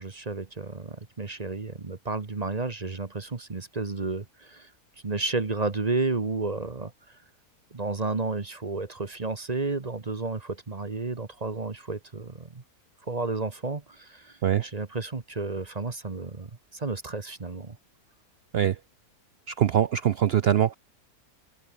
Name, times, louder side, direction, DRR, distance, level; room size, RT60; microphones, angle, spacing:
voice 1, 0.0-4.7 5.0-6.9 7.7-12.6 13.0-17.8, right 3 dB, 30° right, 1.2 m, -32 dB
voice 2, 19.6-20.7, right 10 dB, 65° right, 0.6 m, -22 dB
open air
omnidirectional pair, 1.6 m